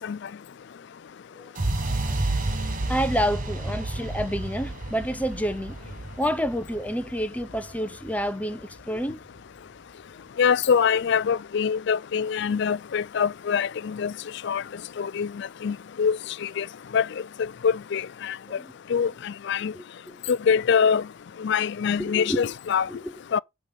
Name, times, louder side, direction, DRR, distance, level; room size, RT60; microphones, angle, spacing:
sound 1, 1.6-9.5, right 2 dB, 40° right, 1.1 m, -31 dB
voice 1, 2.9-9.2 18.6-18.7 19.7-20.2 22.0-22.4 22.9-23.1, equal, 5° left, 0.7 m, -29 dB
voice 2, 10.4-14.1 14.4-14.6 15.0-16.2 16.4-16.7 16.9-17.0 17.6-18.4 18.9-19.7 20.3-21.0 21.4-22.9 23.3-23.4, left 6 dB, 55° left, 0.4 m, -24 dB
9.0 x 3.3 x 6.7 m
head